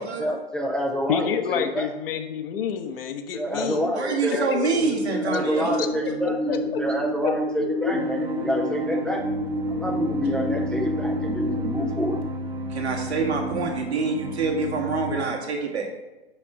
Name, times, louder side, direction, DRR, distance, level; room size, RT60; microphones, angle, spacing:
voice 1, 0.0-1.9 3.3-4.5 5.2-9.3 9.7-12.2, left 1 dB, 5° left, -1 dB, 0.4 m, -28 dB
voice 2, 1.1-4.0 4.5-5.4 5.7-5.9 6.2-6.8 7.2-7.3 7.6-8.0, left 8 dB, 60° left, 6 dB, 1.2 m, -29 dB
voice 3, 3.9-5.8 12.7-15.9, right 4 dB, 80° right, 0 dB, 2.1 m, -26 dB
sound 1, 4.7-12.2, equal, 75° left, 2.4 m, -29 dB
sound 2, 7.9-15.2, right 1 dB, 15° right, 0.8 m, -33 dB
5.6 x 5.4 x 6.1 m, 1.1 s
hypercardioid pair, 115°, 32 cm